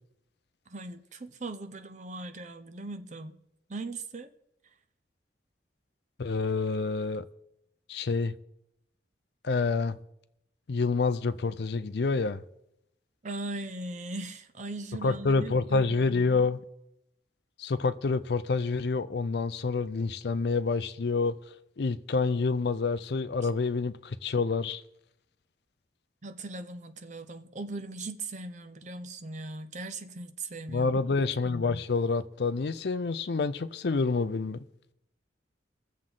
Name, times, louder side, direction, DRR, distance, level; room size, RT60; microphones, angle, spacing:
voice 1, 0.7-3.4 3.7-4.3 13.2-16.4 26.2-31.0, right 2 dB, 40° right, 0.7 m, -39 dB
voice 2, 6.2-7.2 7.9-8.3 9.4-10.0 10.7-12.4 15.0-16.6 17.6-21.4 21.8-24.8 30.7-34.6, left 4 dB, 60° left, 0.5 m, -28 dB
22.0 x 7.5 x 3.8 m
head